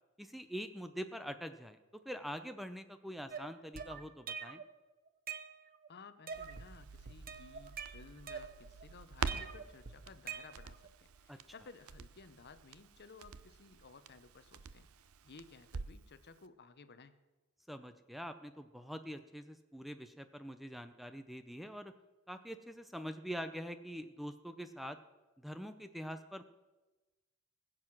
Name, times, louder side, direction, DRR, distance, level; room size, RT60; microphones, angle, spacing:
voice 1, 0.2-1.8 2.1-4.6 11.3-11.4 17.7-21.9 22.3-25.0 25.4-26.4, equal, ahead, 9 dB, 0.5 m, -44 dB
sound 1, 3.3-4.7 5.1-5.9 6.3-6.7 7.1-8.8 9.3-10.9, right 6 dB, 45° right, 0.8 m, -45 dB
voice 2, 5.9-17.2, left 4 dB, 50° left, 12 dB, 0.8 m, -57 dB
Crackle, 6.3-16.1 16.4-16.5, right 5 dB, 85° right, 0.7 m, -47 dB
20.0 x 7.8 x 6.1 m, 1.2 s
head